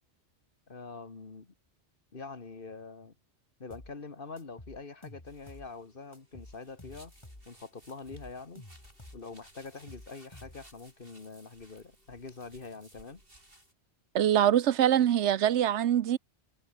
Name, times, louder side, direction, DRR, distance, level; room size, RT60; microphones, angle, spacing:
voice 1, 0.7-1.5 2.1-3.1 3.6-7.1 7.5-8.7 9.1-13.2, left 4 dB, 50° left, 1.9 m, -45 dB
sound 1, 3.7-4.0 4.4-5.7 6.1-7.5 7.9-9.3 9.7-10.8, left 1 dB, 25° left, 3.3 m, -51 dB
sound 2, 5.3-13.7, right 1 dB, 55° right, 8.0 m, -60 dB
voice 2, 14.1-16.2, right 10 dB, 90° right, 1.0 m, -24 dB
omnidirectional pair, 1.2 m